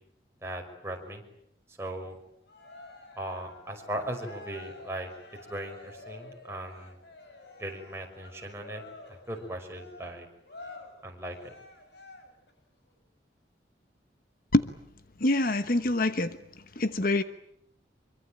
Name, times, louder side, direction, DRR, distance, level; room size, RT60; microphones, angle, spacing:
voice 1, 0.4-1.2 1.8-2.2 3.2-5.1 5.5-7.0 7.6-8.8 9.1-10.3 11.0-11.5, right 1 dB, 15° right, 2 dB, 5.7 m, -38 dB
Cheering, 2.5-12.5, left 3 dB, 70° left, 6.6 m, -49 dB
voice 2, 15.2-16.4 16.8-17.2, left 2 dB, 50° left, 11 dB, 1.1 m, -25 dB
25.5 x 24.0 x 9.0 m, 0.73 s
head